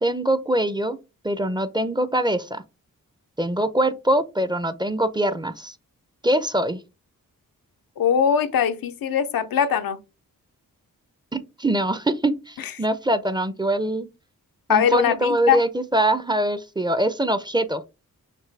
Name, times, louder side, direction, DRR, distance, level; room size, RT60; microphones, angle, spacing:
voice 1, 0.0-1.0 1.2-2.6 3.4-5.7 6.2-6.8 11.3-14.1 14.7-17.8, right 1 dB, 15° right, 0.5 m, -23 dB
voice 2, 8.0-10.0 14.7-15.6, left 8 dB, 85° left, 0.6 m, -21 dB
5.9 x 2.6 x 3.3 m
cardioid pair, 55°, 34 cm